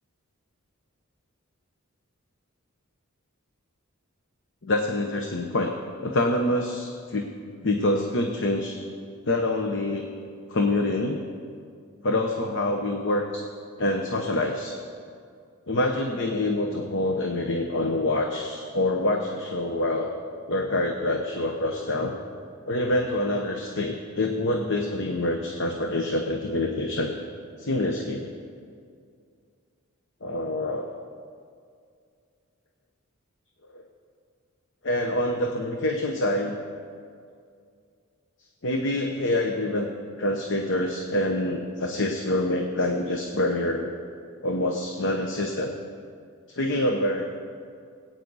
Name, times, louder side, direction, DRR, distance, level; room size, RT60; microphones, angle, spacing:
voice 1, 4.6-5.7 6.0-7.3 7.6-8.8 9.3-10.1 10.5-11.2 12.0-13.4 13.8-14.7 15.7-20.1 20.5-22.2 22.7-27.1 27.6-28.4 30.2-30.9 33.7-33.8 34.8-36.5 38.6-39.9 40.2-43.9 44.4-45.8 46.5-47.2, left 1 dB, 60° left, 3 dB, 0.9 m, -26 dB
20.5 x 9.1 x 4.0 m, 2.3 s
head